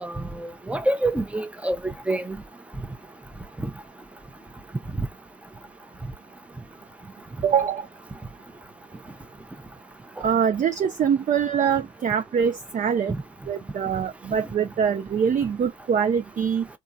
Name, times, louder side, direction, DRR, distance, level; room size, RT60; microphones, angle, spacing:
voice 1, 0.0-2.4 5.0-5.1 13.1-13.2, right 2 dB, 5° right, 0.6 m, -27 dB
voice 2, 7.4-7.9 10.2-13.1 13.5-16.7, right 7 dB, 40° right, 0.4 m, -24 dB
3.7 x 2.3 x 2.7 m
cardioid pair, 90°, 20 cm